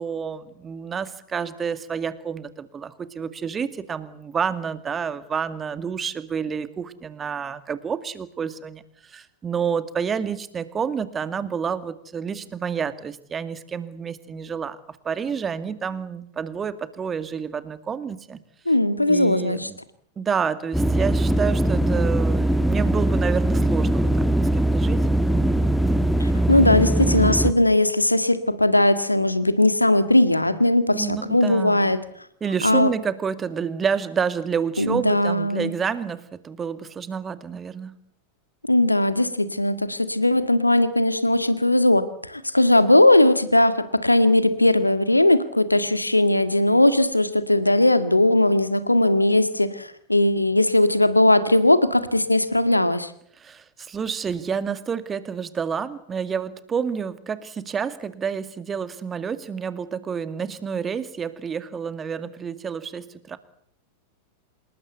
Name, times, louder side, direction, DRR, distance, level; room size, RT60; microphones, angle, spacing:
voice 1, 0.0-18.4 19.1-19.8 20.2-24.1 24.5-25.0 26.6-26.8 30.9-31.9 32.4-38.0 53.4-63.4, right 6 dB, 20° right, 13 dB, 2.2 m, -29 dB
voice 2, 18.7-19.7 26.2-32.0 32.6-32.9 34.8-35.7 38.7-53.1, left 1 dB, 85° left, 12 dB, 1.9 m, -19 dB
sound 1, 20.7-27.5, right 1 dB, ahead, 1.5 m, -21 dB
27.0 x 21.0 x 8.3 m, 0.66 s
figure-of-eight pair, 90°, 0 cm